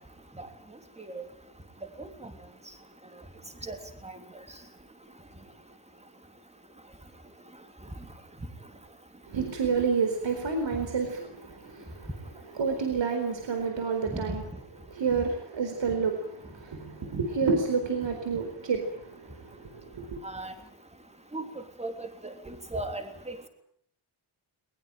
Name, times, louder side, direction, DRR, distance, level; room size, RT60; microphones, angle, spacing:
voice 1, 2.0-2.3 3.6-3.8 4.0-4.1 14.1-14.2 20.2-20.5 21.3-21.4 21.8-23.5, right 2 dB, 15° right, 6 dB, 3.3 m, -37 dB
voice 2, 9.3-12.1 12.5-14.4 14.9-20.2, right 5 dB, 60° right, 5 dB, 4.4 m, -29 dB
21.5 x 21.5 x 9.1 m, 0.66 s
wide cardioid pair, 165°, 49 cm